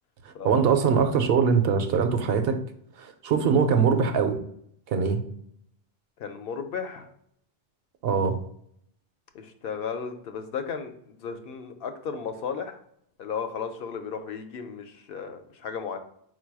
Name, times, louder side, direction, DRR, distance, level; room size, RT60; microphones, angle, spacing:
voice 1, 0.2-2.6 3.0-4.4 4.9-5.2 8.0-8.4, right 6 dB, 75° right, 7 dB, 0.8 m, -22 dB
voice 2, 6.2-7.1 9.3-12.8 13.2-16.0, left 6 dB, 70° left, 7 dB, 0.8 m, -34 dB
4.5 x 2.2 x 4.6 m, 0.68 s
omnidirectional pair, 1.0 m